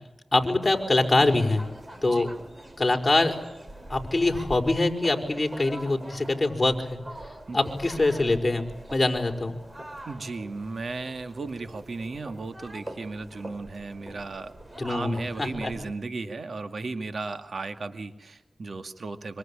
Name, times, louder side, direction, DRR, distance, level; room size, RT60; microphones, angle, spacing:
voice 1, 0.3-1.6 2.0-2.3 2.8-3.4 3.9-7.0 7.5-9.5 14.8-15.7, left 2 dB, 30° left, 3 dB, 5.5 m, -24 dB
sound 1, 0.6-15.9, right 1 dB, 30° right, 6.0 m, -43 dB
voice 2, 10.1-14.5 14.8-19.4, right 3 dB, 70° right, 8 dB, 2.2 m, -35 dB
26.0 x 25.5 x 8.8 m, 1.0 s
cardioid pair, 45°, 0 cm